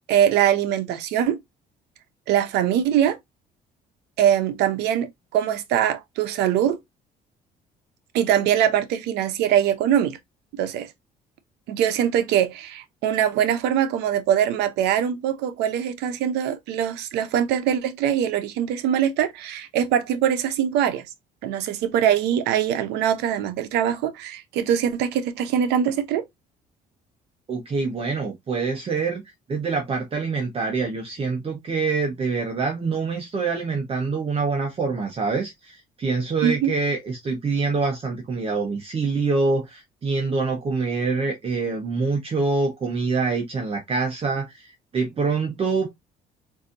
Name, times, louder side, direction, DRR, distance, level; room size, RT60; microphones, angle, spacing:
voice 1, 0.1-1.4 2.3-3.2 4.2-6.8 8.1-10.2 10.5-10.9 11.7-21.1 21.4-26.2 36.4-36.7, right 10 dB, 85° right, 0.7 m, -22 dB
voice 2, 27.5-29.2 29.5-45.9, right 4 dB, 35° right, 0.9 m, -25 dB
3.9 x 2.7 x 2.5 m
cardioid pair, 110°, 17 cm